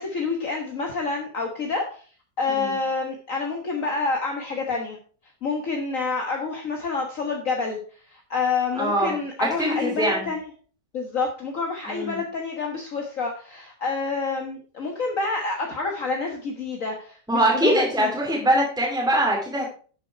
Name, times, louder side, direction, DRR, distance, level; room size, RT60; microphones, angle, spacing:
voice 1, 0.0-2.0 2.4-5.0 5.4-7.8 8.1-10.5 10.9-18.1, left 4 dB, 50° left, 2 dB, 1.7 m, -28 dB
voice 2, 8.8-10.3 11.9-12.2 17.3-19.7, right 1 dB, ahead, -2 dB, 2.4 m, -23 dB
11.5 x 6.7 x 4.5 m, 0.41 s
omnidirectional pair, 1.9 m